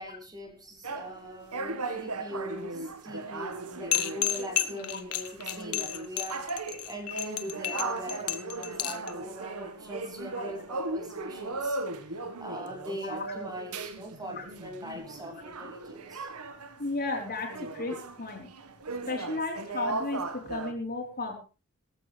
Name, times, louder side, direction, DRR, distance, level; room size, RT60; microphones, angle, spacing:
voice 1, 0.0-11.8 12.4-16.3, equal, 20° right, 3 dB, 3.4 m, -41 dB
sound 1, 0.8-16.9 17.1-20.7, right 3 dB, 85° right, 1.7 m, -37 dB
sound 2, 3.9-9.1, left 13 dB, 90° left, 1.2 m, -31 dB
voice 2, 16.8-18.5 19.1-21.3, left 2 dB, 45° left, 1 dB, 4.2 m, -34 dB
17.0 x 14.5 x 3.4 m, 0.33 s
head